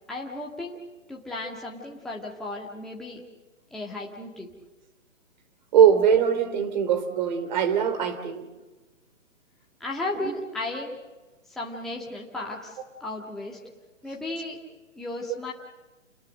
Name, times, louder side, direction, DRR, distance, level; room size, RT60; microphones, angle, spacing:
voice 1, 0.1-3.2 3.7-4.5 9.8-11.0 11.5-13.6 14.0-14.6 14.9-15.5, left 2 dB, ahead, -3 dB, 1.8 m, -35 dB
voice 2, 5.7-8.5 10.2-10.3, right 8 dB, 35° right, 10 dB, 3.0 m, -21 dB
29.5 x 21.5 x 6.5 m, 1.2 s
figure-of-eight pair, 135°, 39 cm